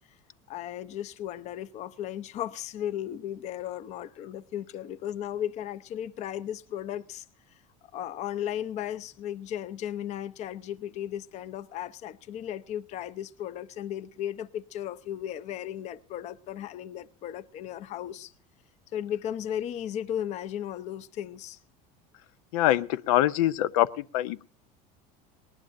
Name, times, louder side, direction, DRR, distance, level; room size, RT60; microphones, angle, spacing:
voice 1, 0.5-7.2 7.9-18.3 18.9-21.6, left 10 dB, 40° left, 0.7 m, -35 dB
voice 2, 22.5-24.4, left 14 dB, 90° left, 0.6 m, -24 dB
19.5 x 19.0 x 2.6 m
cardioid pair, 150°, 17 cm